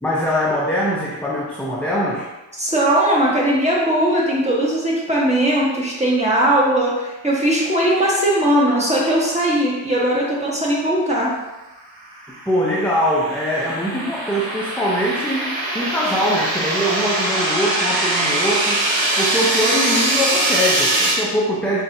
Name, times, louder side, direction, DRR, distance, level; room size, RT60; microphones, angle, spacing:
voice 1, 0.0-2.3 12.5-18.8 19.2-21.8, equal, 5° left, -5 dB, 0.5 m, -22 dB
voice 2, 2.6-11.4, right 1 dB, 15° right, -5 dB, 1.2 m, -19 dB
sound 1, 12.2-21.1, right 1 dB, 90° right, 0.9 m, -22 dB
5.4 x 2.4 x 2.7 m, 1.1 s
cardioid pair, 60°, 45 cm